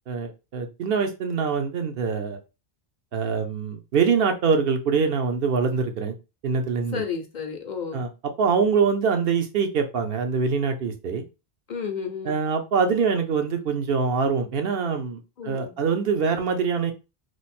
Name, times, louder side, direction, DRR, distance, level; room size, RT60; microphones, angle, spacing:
voice 1, 0.1-2.4 3.1-6.1 6.4-7.0 7.9-8.1 8.4-11.2 12.2-16.9, right 5 dB, 70° right, 0.8 m, -24 dB
voice 2, 6.9-8.0 11.7-12.4 15.4-15.8, left 6 dB, 55° left, 0.6 m, -32 dB
3.1 x 2.0 x 4.1 m
omnidirectional pair, 1.0 m